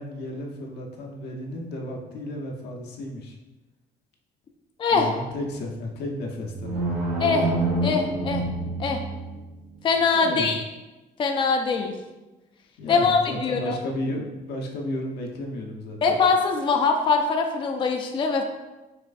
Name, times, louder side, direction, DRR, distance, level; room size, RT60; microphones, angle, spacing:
voice 1, 0.0-3.3 4.9-6.8 10.1-10.5 12.8-16.0, left 1 dB, 75° left, 1 dB, 0.8 m, -33 dB
voice 2, 4.8-5.1 7.2-7.5 7.8-8.5 8.8-9.0 9.8-10.6 11.2-12.0 12.9-13.7 16.0-18.4, left 4 dB, 30° left, 3 dB, 0.4 m, -22 dB
sound 1, 6.5-9.5, right 2 dB, 90° right, 1.3 m, -27 dB
5.7 x 3.2 x 2.5 m, 1.1 s
cardioid pair, 110°, 17 cm